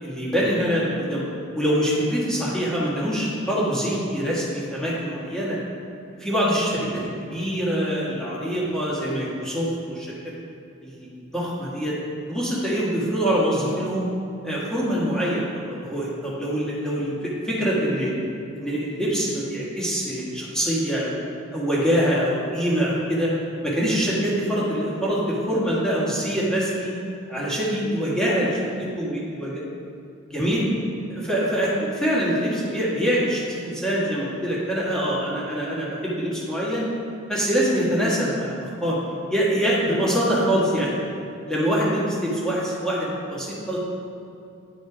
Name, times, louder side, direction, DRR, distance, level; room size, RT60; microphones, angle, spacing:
voice 1, 0.0-1.2 1.5-5.6 6.2-10.1 10.8-11.1 11.3-11.9 12.3-14.1 14.4-18.1 18.5-21.2 21.5-23.3 23.6-26.9 27.3-29.6 30.2-30.7 31.1-36.9 37.3-39.0 39.3-40.9 41.5-43.8, equal, 5° left, -7 dB, 1.5 m, -24 dB
10.0 x 4.3 x 4.8 m, 2.6 s
head